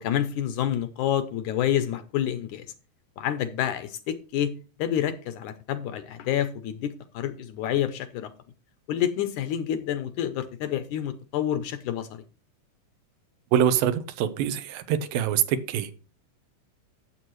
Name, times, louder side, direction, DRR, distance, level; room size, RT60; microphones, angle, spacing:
voice 1, 0.0-2.7 3.2-4.5 4.8-8.3 8.9-12.2, left 10 dB, 75° left, 2.0 m, -28 dB
voice 2, 13.5-15.9, right 9 dB, 90° right, 2.7 m, -24 dB
11.5 x 8.0 x 3.1 m
omnidirectional pair, 4.0 m